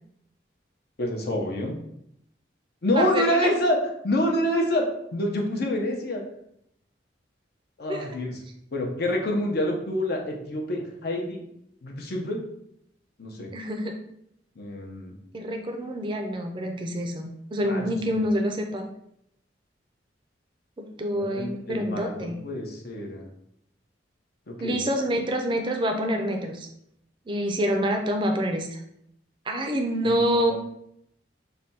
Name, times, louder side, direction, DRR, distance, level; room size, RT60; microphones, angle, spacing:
voice 1, 1.0-1.8 2.8-3.8 4.0-4.9 5.1-6.2 7.8-8.4 8.7-11.4 11.8-12.4 13.2-13.5 14.6-15.1 17.6-17.9 21.2-23.2 24.5-24.8 30.0-30.5, left 1 dB, 55° left, 1 dB, 0.7 m, -27 dB
voice 2, 2.9-3.5 7.9-8.1 13.5-13.9 15.3-18.8 20.8-22.4 24.6-26.7 27.3-28.8 29.5-30.5, equal, 25° right, 3 dB, 0.4 m, -27 dB
3.3 x 2.2 x 4.1 m, 0.74 s
head